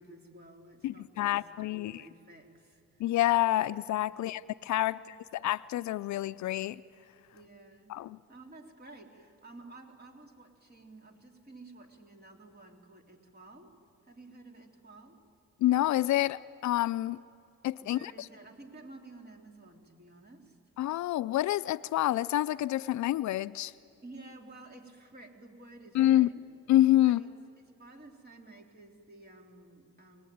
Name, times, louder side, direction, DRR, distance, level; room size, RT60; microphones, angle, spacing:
voice 1, 0.0-1.4 1.7-3.0 4.1-4.4 4.8-5.2 7.3-8.0 8.3-13.7 14.0-15.2 17.8-20.6 24.0-26.4 27.0-27.3 27.6-30.3, right 2 dB, 30° right, 2 dB, 3.5 m, -52 dB
voice 2, 0.8-2.0 3.0-6.8 7.9-8.2 15.6-17.2 17.6-18.1 20.8-23.7 25.9-26.3 26.7-27.2, left 14 dB, 70° left, 16 dB, 0.5 m, -27 dB
24.5 x 19.5 x 9.4 m, 2.5 s
cardioid pair, 90°, 30 cm